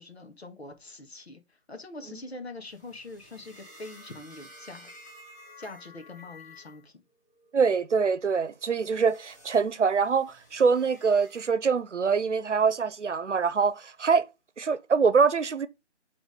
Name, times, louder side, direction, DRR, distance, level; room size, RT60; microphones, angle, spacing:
voice 1, 0.0-4.9 5.6-6.9, left 2 dB, 60° left, 1.9 m, -44 dB
sound 1, 2.7-6.9 7.3-7.7 8.3-11.5, left 1 dB, 15° left, 1.3 m, -52 dB
voice 2, 7.5-14.3 14.6-15.7, right 5 dB, 80° right, 0.9 m, -24 dB
5.9 x 4.0 x 5.1 m
figure-of-eight pair, 175°, 35 cm